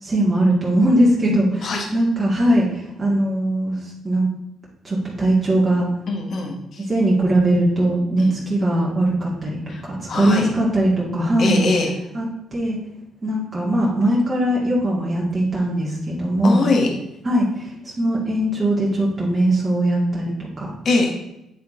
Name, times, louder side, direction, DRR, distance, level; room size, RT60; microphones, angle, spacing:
voice 1, 0.0-4.3 4.8-5.9 6.9-11.6 12.1-12.8 13.2-16.6 17.2-20.7, right 1 dB, 30° right, -6 dB, 2.0 m, -20 dB
voice 2, 6.1-6.9 8.2-8.3 9.7-9.8 10.1-10.5 11.4-11.9 16.4-16.9 20.8-21.1, left 3 dB, 60° left, 1 dB, 1.4 m, -22 dB
8.5 x 3.8 x 3.8 m, 0.86 s
hypercardioid pair, 50°, 0 cm